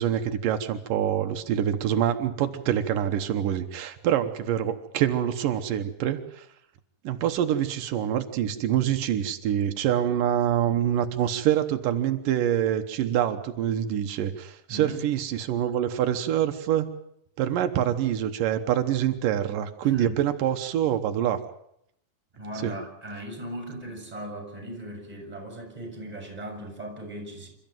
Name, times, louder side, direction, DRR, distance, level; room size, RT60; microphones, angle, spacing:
voice 1, 0.0-6.5 7.0-16.9 17.4-21.4 22.6-22.7, right 10 dB, 90° right, 7 dB, 2.8 m, -25 dB
voice 2, 14.7-15.1 19.8-20.2 22.3-27.5, right 1 dB, 10° right, 4 dB, 7.1 m, -38 dB
28.0 x 14.0 x 9.2 m, 0.74 s
omnidirectional pair, 3.7 m